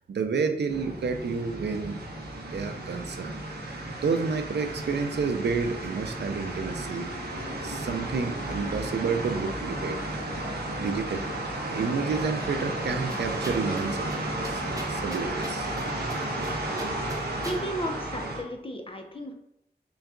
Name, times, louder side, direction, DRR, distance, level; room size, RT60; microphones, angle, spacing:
voice 1, 0.0-2.0 2.5-3.4 4.0-7.1 7.6-10.0 10.8-11.3 11.6-14.1 14.4-14.6 14.9-15.7 16.8-16.9, right 5 dB, 90° right, 6 dB, 0.4 m, -30 dB
sound 1, 0.7-18.4, right 1 dB, 70° right, 0.8 m, -33 dB
sound 2, 7.9-16.0, equal, 60° left, 1.5 m, -48 dB
sound 3, 13.1-13.8 14.1-14.2 14.4-16.5 16.8-17.6, right 1 dB, 20° right, 0.7 m, -39 dB
voice 2, 16.7-17.1 17.4-19.3, equal, 30° left, 3 dB, 0.7 m, -35 dB
3.8 x 2.3 x 3.6 m, 0.78 s
wide cardioid pair, 55°, 17 cm